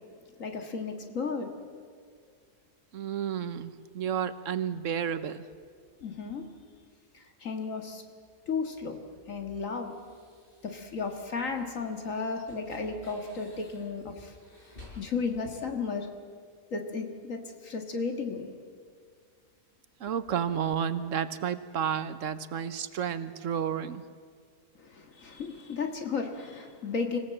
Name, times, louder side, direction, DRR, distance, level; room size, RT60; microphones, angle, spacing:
voice 1, 0.4-1.5 6.0-6.4 7.1-8.0 8.5-9.0 9.3-10.0 10.6-14.3 15.0-16.1 16.7-18.5 24.8-27.2, left 4 dB, 65° left, 4 dB, 2.2 m, -34 dB
voice 2, 2.9-5.5 20.0-24.0, right 8 dB, 65° right, 13 dB, 1.2 m, -31 dB
sound 1, 8.2-15.6, left 2 dB, 40° left, 6.0 m, -54 dB
26.0 x 17.0 x 7.7 m, 2.1 s
omnidirectional pair, 1.5 m